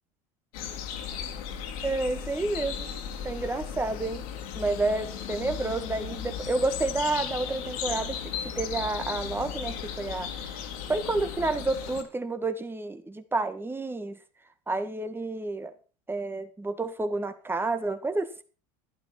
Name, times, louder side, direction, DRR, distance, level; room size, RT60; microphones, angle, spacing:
sound 1, 0.5-12.0, left 8 dB, 80° left, 2.8 m, -36 dB
voice 1, 1.8-2.9 3.2-4.2 4.5-10.3 10.9-14.2 14.7-15.7 16.1-18.4, right 2 dB, 10° right, 1.7 m, -30 dB
12.0 x 11.5 x 4.4 m
supercardioid pair, 95°, 18 cm